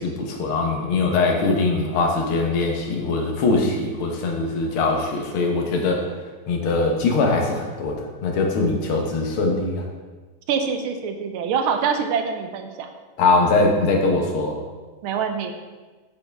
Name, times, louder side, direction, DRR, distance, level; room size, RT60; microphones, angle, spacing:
voice 1, 0.0-6.0 6.5-9.9 13.2-14.6, left 3 dB, 85° left, 1 dB, 2.0 m, -22 dB
voice 2, 10.5-12.9 15.0-15.5, right 6 dB, 85° right, 6 dB, 1.6 m, -25 dB
8.2 x 6.5 x 3.4 m, 1.3 s
omnidirectional pair, 2.3 m